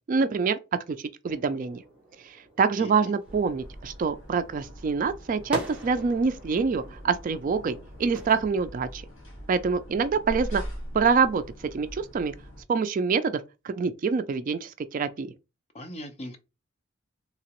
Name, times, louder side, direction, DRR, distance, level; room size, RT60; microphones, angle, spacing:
voice 1, 0.1-0.6 0.9-1.8 2.3-9.0 9.5-10.6 10.9-11.4 11.7-12.3 12.7-13.4 13.6-15.3, right 5 dB, 40° right, 0.3 m, -26 dB
sound 1, 1.2-8.4, equal, 5° right, 1.1 m, -42 dB
voice 2, 2.8-3.1 15.7-16.4, equal, 30° left, 0.6 m, -39 dB
sound 2, 3.2-12.6, equal, 65° left, 1.6 m, -42 dB
3.3 x 2.9 x 2.9 m
head